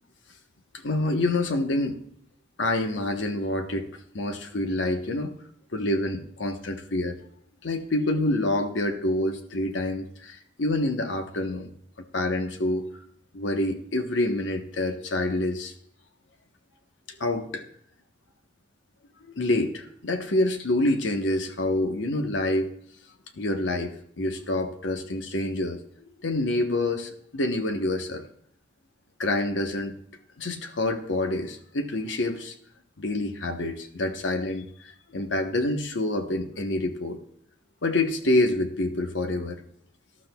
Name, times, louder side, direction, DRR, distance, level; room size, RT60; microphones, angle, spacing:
voice 1, 0.7-2.0 2.6-5.4 5.7-7.2 7.6-11.7 12.1-12.9 13.3-15.7 17.2-17.7 19.4-22.7 23.3-25.8 26.2-28.3 29.2-30.0 30.4-32.5 33.0-37.2 37.8-39.6, left 1 dB, 90° left, 6 dB, 1.0 m, -27 dB
18.0 x 12.0 x 2.3 m, 0.66 s
head